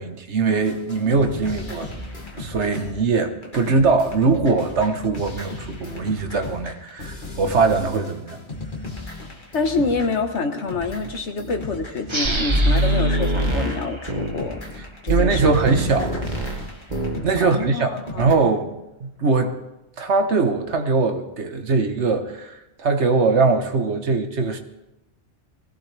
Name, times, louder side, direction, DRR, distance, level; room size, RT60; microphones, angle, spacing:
voice 1, 0.0-2.0 2.3-8.4 15.1-16.1 17.2-18.7 19.0-19.6 20.0-24.6, right 4 dB, 80° right, 6 dB, 1.5 m, -21 dB
sound 1, 0.7-18.4, left 1 dB, 45° left, 2.3 m, -35 dB
voice 2, 9.5-14.8 15.0-15.5 17.4-18.2, left 3 dB, 85° left, 6 dB, 1.7 m, -26 dB
sound 2, 12.0-15.3, right 2 dB, 25° right, 1.2 m, -32 dB
sound 3, 12.2-14.4 15.1-16.6 16.9-17.2, right 1 dB, 40° right, 1.9 m, -23 dB
20.0 x 16.0 x 3.4 m, 0.94 s
omnidirectional pair, 1.1 m